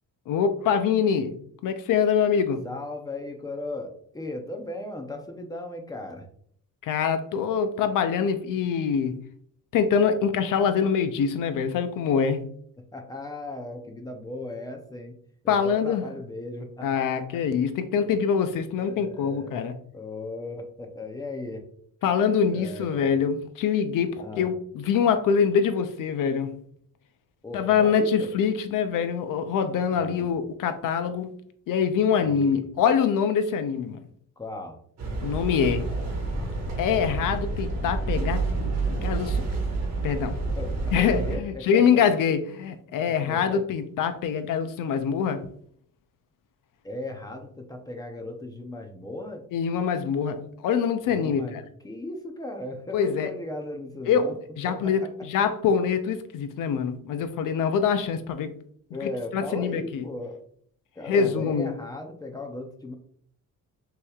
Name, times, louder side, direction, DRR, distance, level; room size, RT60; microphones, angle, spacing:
voice 1, 0.3-1.3 1.6-2.6 6.8-9.2 9.7-12.4 15.5-16.0 16.8-19.7 22.0-26.6 27.5-31.3 31.7-34.0 35.2-35.9 36.8-39.4 40.0-40.3 40.9-45.5 49.5-51.6 52.9-53.3 54.1-54.3 54.6-58.5 59.0-60.0 61.1-61.7, left 7 dB, 70° left, 0.5 m, -24 dB
voice 2, 2.6-6.3 12.8-15.1 15.4-17.2 18.8-21.6 22.1-23.1 24.2-24.6 27.4-28.3 29.9-30.3 32.2-32.7 34.4-34.8 40.6-42.0 43.1-43.6 46.8-49.5 51.1-54.3 54.7-55.1 58.9-60.4 61.0-63.0, left 2 dB, 10° left, 0.5 m, -37 dB
sound 1, 35.0-41.4, right 3 dB, 50° right, 1.1 m, -29 dB
6.3 x 3.0 x 2.3 m
cardioid pair, 170°, 34 cm